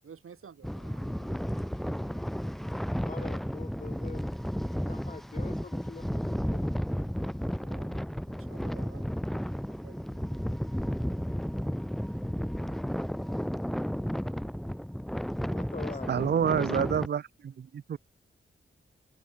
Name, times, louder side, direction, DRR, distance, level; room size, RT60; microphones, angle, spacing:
voice 1, 0.0-2.6 7.3-9.1 9.6-10.4 11.8-12.2, right 7 dB, 90° right, 6.8 m, -54 dB
sound 1, 0.6-17.1, equal, ahead, 0.7 m, -33 dB
voice 2, 3.0-4.2 4.8-6.6 15.5-16.3, left 4 dB, 35° left, 1.7 m, -44 dB
voice 3, 16.1-18.0, right 8 dB, 55° right, 0.6 m, -28 dB
wide cardioid pair, 135°, 21 cm